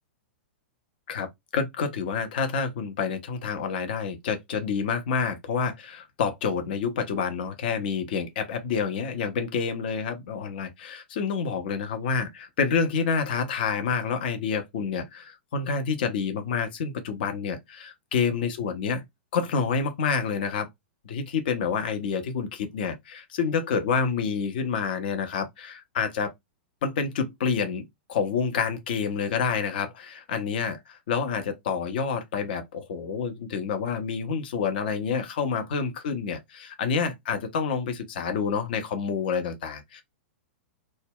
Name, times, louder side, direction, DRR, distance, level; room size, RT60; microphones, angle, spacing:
voice 1, 1.5-19.0 19.3-20.7 21.0-26.3 26.8-40.0, left 6 dB, 55° left, 0.6 m, -28 dB
2.2 x 2.0 x 3.5 m
figure-of-eight pair, 100°, 6 cm